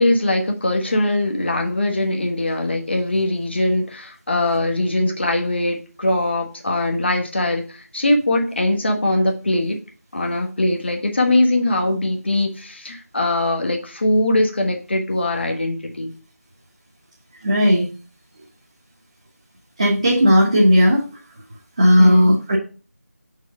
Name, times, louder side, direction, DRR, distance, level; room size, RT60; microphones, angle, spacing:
voice 1, 0.0-9.8 10.1-16.1 22.0-22.4, left 1 dB, 45° left, 2 dB, 1.2 m, -21 dB
voice 2, 17.4-17.9 19.8-21.1 21.8-22.6, equal, 25° right, -3 dB, 1.1 m, -15 dB
4.9 x 4.7 x 5.2 m, 0.36 s
figure-of-eight pair, 170°, 8 cm